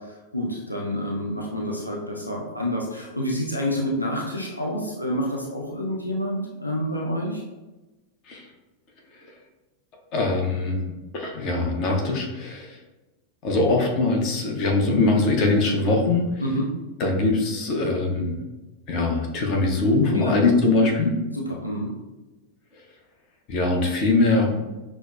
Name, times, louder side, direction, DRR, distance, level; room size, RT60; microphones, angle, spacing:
voice 1, 0.1-7.4 16.4-16.7 20.1-20.3 21.3-21.9, equal, 85° left, -2 dB, 0.5 m, -28 dB
voice 2, 10.1-10.8 11.1-12.8 13.4-16.4 17.0-18.4 18.9-21.2 23.5-24.5, left 3 dB, 40° left, 1 dB, 0.7 m, -22 dB
6.1 x 2.1 x 2.3 m, 1.1 s
figure-of-eight pair, 90°, 0 cm